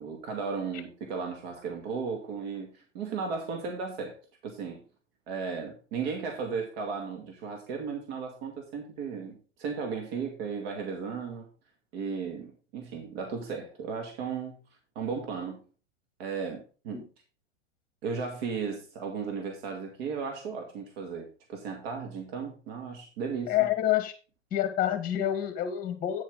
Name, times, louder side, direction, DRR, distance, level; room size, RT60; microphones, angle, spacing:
voice 1, 0.0-4.2 4.4-4.8 5.3-11.5 11.9-14.6 15.0-15.6 16.2-17.0 18.0-23.5, right 5 dB, 50° right, 3 dB, 2.3 m, -35 dB
voice 2, 23.5-24.1 24.5-26.2, left 12 dB, 20° left, 9 dB, 1.8 m, -27 dB
9.3 x 7.5 x 3.8 m, 0.35 s
hypercardioid pair, 115°, 37 cm